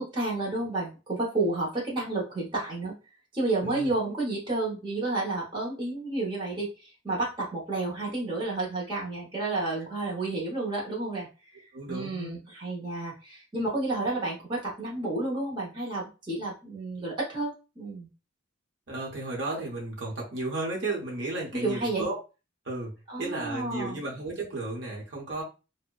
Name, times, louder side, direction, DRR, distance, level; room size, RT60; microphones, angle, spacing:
voice 1, 0.0-2.9 3.3-18.1 21.6-22.0 23.1-24.0, right 2 dB, 25° right, -5 dB, 0.8 m, -31 dB
voice 2, 3.6-3.9 11.7-12.4 18.9-22.2 22.6-22.9 23.2-25.4, right 2 dB, 65° right, -3 dB, 0.9 m, -33 dB
2.7 x 2.1 x 2.3 m, 0.31 s
head